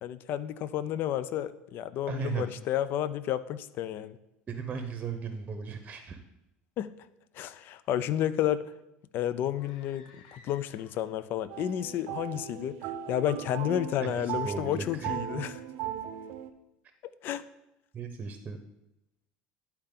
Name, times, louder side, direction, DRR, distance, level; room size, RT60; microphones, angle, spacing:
voice 1, 0.0-4.2 6.8-6.9 7.4-8.6 9.1-12.7 13.1-15.5 17.2-17.4, left 11 dB, 55° left, 15 dB, 0.4 m, -31 dB
voice 2, 2.1-2.5 4.5-6.2 14.0-15.5 17.9-18.6, right 6 dB, 30° right, 7 dB, 0.8 m, -36 dB
sound 1, 9.5-11.3, left 5 dB, 85° left, 0.9 m, -57 dB
sound 2, 11.5-16.5, right 10 dB, 70° right, 0.6 m, -38 dB
11.0 x 4.4 x 3.8 m, 0.88 s
supercardioid pair, 105°, 4 cm